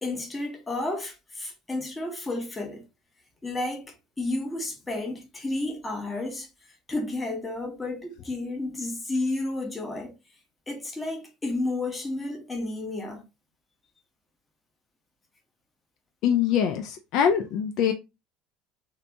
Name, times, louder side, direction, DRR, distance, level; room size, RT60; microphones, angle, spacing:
voice 1, 0.0-2.9 3.4-10.2 10.7-13.2, left 2 dB, 10° left, 0.7 m, -32 dB
voice 2, 16.2-17.9, left 8 dB, 50° left, 0.4 m, -23 dB
2.7 x 2.6 x 3.3 m
cardioid pair, 175°, 0 cm